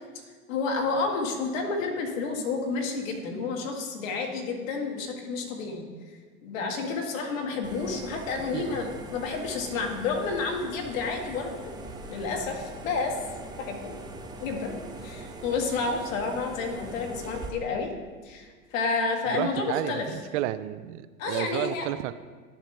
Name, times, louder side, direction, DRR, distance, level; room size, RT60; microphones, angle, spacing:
voice 1, 0.5-5.9 6.4-11.6 12.1-13.1 13.6-13.9 14.4-14.7 15.0-17.9 18.3-20.1 21.2-21.9, left 4 dB, 70° left, 2 dB, 1.9 m, -30 dB
sound 1, 7.6-17.5, right 2 dB, 10° right, 1.0 m, -42 dB
voice 2, 19.2-22.1, right 14 dB, 60° right, 14 dB, 0.5 m, -32 dB
11.0 x 7.4 x 3.3 m, 1.5 s
hypercardioid pair, 95°, 42 cm